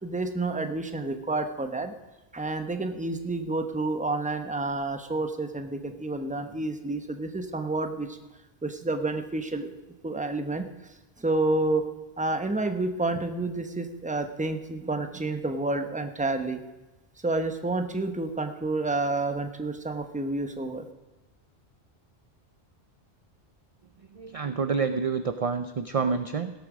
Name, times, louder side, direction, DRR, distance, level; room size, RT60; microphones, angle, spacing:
voice 1, 0.0-1.9 2.3-8.1 8.6-9.7 10.0-10.7 11.2-11.8 12.2-16.6 17.2-20.9, right 2 dB, 10° right, 7 dB, 0.7 m, -29 dB
voice 2, 24.1-26.5, right 5 dB, 45° right, 9 dB, 0.5 m, -28 dB
17.0 x 8.3 x 6.1 m, 1.1 s
omnidirectional pair, 1.1 m